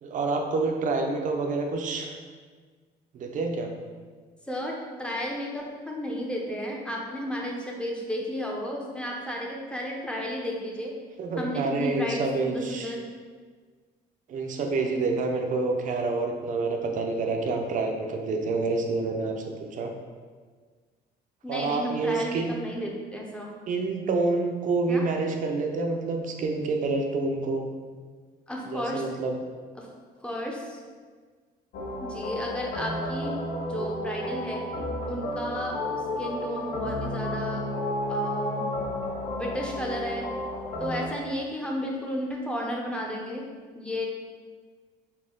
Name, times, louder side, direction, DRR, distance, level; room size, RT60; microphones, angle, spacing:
voice 1, 0.0-2.2 3.1-3.7 11.2-12.9 14.3-19.9 21.5-22.7 23.7-27.7 28.7-29.3, right 3 dB, 50° right, 3 dB, 0.5 m, -28 dB
voice 2, 4.5-10.9 11.4-13.0 21.4-23.5 24.9-25.0 28.5-29.1 29.8-29.9 30.2-30.8 32.0-33.4 33.7-34.6 35.1-35.8 36.2-37.6 38.1-38.7 39.3-40.3 40.8-43.4 43.7-44.1, equal, 5° left, -2 dB, 0.6 m, -33 dB
sound 1, 31.7-41.1, left 1 dB, 70° left, 0.6 m, -32 dB
4.1 x 2.2 x 3.7 m, 1.5 s
cardioid pair, 110°, 17 cm